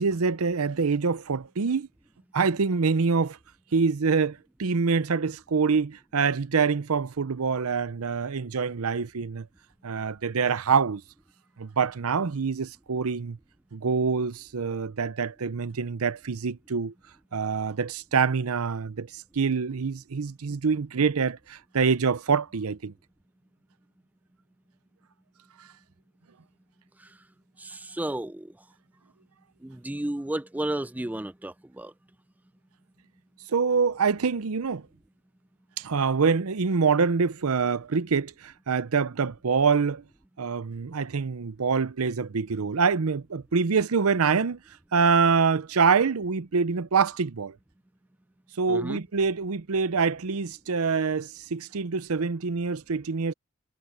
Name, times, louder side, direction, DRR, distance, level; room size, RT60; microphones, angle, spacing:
voice 1, 0.0-1.9 2.3-3.4 3.7-9.5 9.8-11.0 11.6-13.4 13.7-16.9 17.3-22.9 33.5-34.8 35.8-40.0 40.4-44.6 44.9-47.5 48.6-53.3, right 5 dB, 80° right, 0.6 m, -25 dB
voice 2, 27.6-28.5 29.6-31.9 48.7-49.0, right 1 dB, 5° right, 0.3 m, -33 dB
head